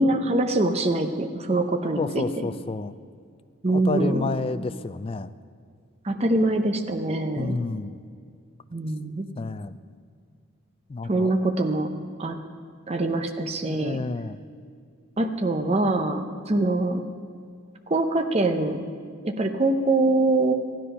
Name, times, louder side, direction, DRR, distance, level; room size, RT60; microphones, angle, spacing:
voice 1, 0.0-2.3 3.6-4.3 6.0-7.6 8.7-9.3 11.0-11.9 12.2-12.4 12.9-14.0 15.2-17.0 17.9-18.8 19.2-20.5, right 2 dB, 30° right, 5 dB, 0.7 m, -24 dB
voice 2, 2.0-2.9 3.7-5.3 7.3-8.0 9.4-9.8 10.9-11.4 13.6-14.4, left 3 dB, 25° left, 12 dB, 0.3 m, -30 dB
15.0 x 10.0 x 5.5 m, 2.2 s
head